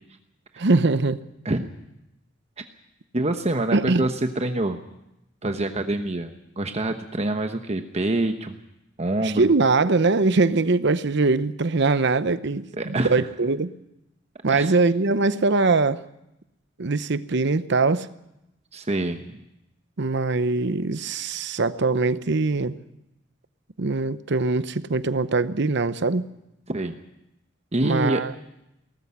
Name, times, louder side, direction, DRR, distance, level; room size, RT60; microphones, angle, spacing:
voice 1, 0.6-1.2 3.7-4.0 9.2-13.7 14.4-16.0 16.8-18.1 20.0-22.8 23.8-26.3 27.8-28.3, right 3 dB, 65° right, 14 dB, 0.8 m, -22 dB
voice 2, 3.1-4.8 5.4-8.5 9.0-9.5 12.8-13.3 14.5-14.7 18.7-19.4 26.7-27.0 27.7-28.2, right 2 dB, 35° right, 7 dB, 1.1 m, -26 dB
18.5 x 14.0 x 9.9 m, 0.86 s
head